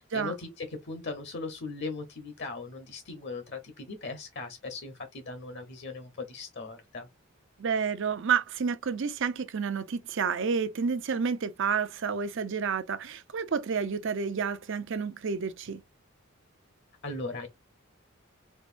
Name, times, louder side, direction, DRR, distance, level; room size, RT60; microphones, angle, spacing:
voice 1, 0.0-7.1 17.0-17.5, left 3 dB, 55° left, 1.0 m, -38 dB
voice 2, 7.6-15.8, right 6 dB, 60° right, 0.6 m, -30 dB
4.6 x 2.6 x 2.5 m
head